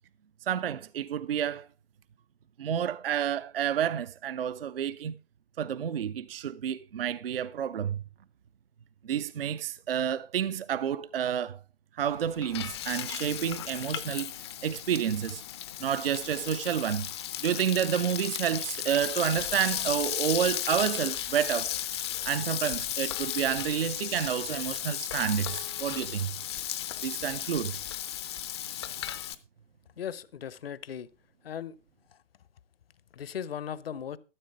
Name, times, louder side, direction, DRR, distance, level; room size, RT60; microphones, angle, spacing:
voice 1, 0.4-1.7 2.6-5.2 5.6-8.0 9.0-11.6 12.0-15.4 15.8-17.1 17.4-21.7 22.3-26.3 27.0-27.8, right 9 dB, 50° right, 0.5 m, -29 dB
Frying (food), 12.1-29.4, left 11 dB, 20° left, 0.5 m, -35 dB
voice 2, 30.0-31.1 31.4-31.8 32.1-32.2 33.1-34.2, left 8 dB, 50° left, 0.8 m, -37 dB
13.5 x 7.6 x 4.7 m
figure-of-eight pair, 125°, 37 cm